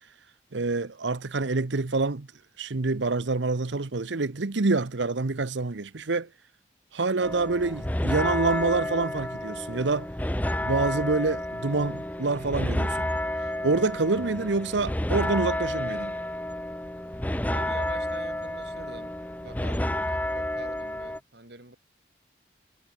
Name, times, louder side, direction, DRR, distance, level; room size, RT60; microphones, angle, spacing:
voice 1, 0.5-2.3 2.6-6.3 6.9-10.1 10.6-13.1 13.6-16.1, right 3 dB, 90° right, 1.0 m, -27 dB
sound 1, 7.2-21.2, left 1 dB, 10° left, 0.8 m, -30 dB
voice 2, 17.5-21.8, right 2 dB, 65° right, 4.7 m, -46 dB
head